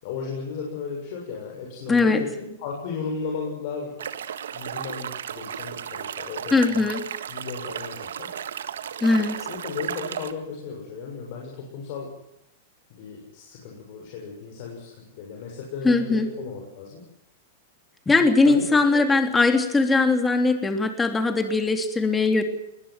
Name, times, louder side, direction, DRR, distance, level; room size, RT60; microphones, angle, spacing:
voice 1, 0.0-4.0 4.5-6.9 7.3-8.4 9.5-12.1 12.9-17.1 18.4-19.1, left 5 dB, 55° left, 0 dB, 6.9 m, -35 dB
voice 2, 1.9-2.2 6.5-7.0 9.0-9.4 15.8-16.3 18.0-22.4, left 3 dB, 10° left, 6 dB, 3.4 m, -20 dB
sound 1, 4.0-10.3, right 9 dB, 85° right, 1.6 m, -34 dB
21.5 x 20.5 x 7.7 m, 0.80 s
hypercardioid pair, 125°, 0 cm